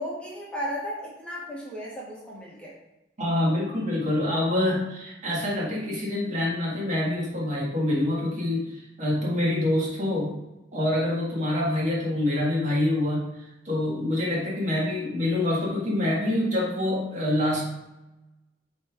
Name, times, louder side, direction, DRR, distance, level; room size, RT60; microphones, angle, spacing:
voice 1, 0.0-2.7, equal, 5° left, -6 dB, 1.3 m, -35 dB
voice 2, 3.2-10.4 10.7-17.6, left 1 dB, 40° right, -4 dB, 1.8 m, -26 dB
8.3 x 3.4 x 3.6 m, 0.98 s
head